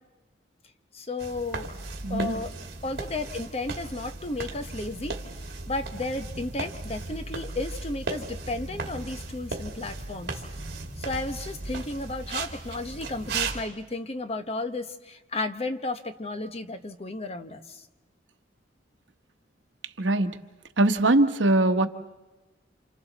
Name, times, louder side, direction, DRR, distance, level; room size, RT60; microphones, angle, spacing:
voice 1, 0.9-1.7 2.1-2.5 2.8-5.2 5.7-10.4 11.0-17.8, left 2 dB, 35° left, 9 dB, 1.0 m, -33 dB
sound 1, 1.2-13.6, right 3 dB, 60° right, 2.2 m, -36 dB
voice 2, 2.0-2.4 20.0-20.3 20.8-21.9, right 2 dB, 75° right, 8 dB, 1.1 m, -21 dB
29.0 x 27.5 x 4.1 m, 1.1 s
head